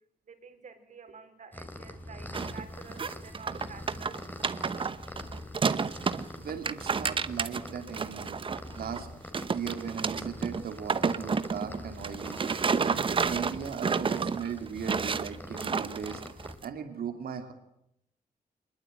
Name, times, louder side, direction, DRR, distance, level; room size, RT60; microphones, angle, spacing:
voice 1, 0.2-4.7, right 5 dB, 55° right, 6 dB, 4.3 m, -50 dB
sound 1, 1.5-16.6, left 1 dB, 10° left, 3.0 m, -45 dB
sound 2, 2.3-2.6 2.9-6.2 6.5-9.0 9.3-16.6, right 5 dB, 35° right, 1.0 m, -30 dB
voice 2, 6.4-8.4 8.8-9.1 9.5-12.4 12.8-16.2 16.6-17.5, right 7 dB, 80° right, 7 dB, 2.8 m, -37 dB
25.0 x 21.5 x 9.1 m, 0.78 s
wide cardioid pair, 165°, 15 cm